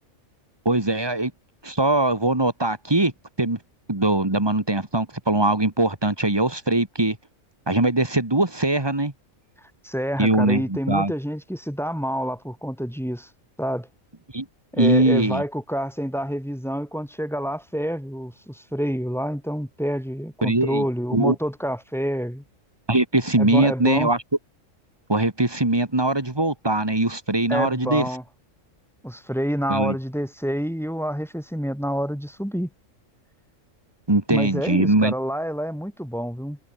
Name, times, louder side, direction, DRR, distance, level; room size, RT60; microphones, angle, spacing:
voice 1, 0.7-1.3 1.6-3.1 3.4-3.6 3.9-7.2 7.7-9.1 10.2-11.1 14.3-14.5 14.8-15.4 20.4-20.8 21.1-21.4 22.9-24.2 25.1-28.0 29.7-29.9 34.1-35.1, right 2 dB, 20° right, 2.2 m, -21 dB
voice 2, 9.8-13.3 13.6-13.9 14.7-22.4 23.4-24.1 27.5-28.2 29.0-32.7 34.3-36.6, equal, ahead, 5.5 m, -28 dB
omnidirectional pair, 1.4 m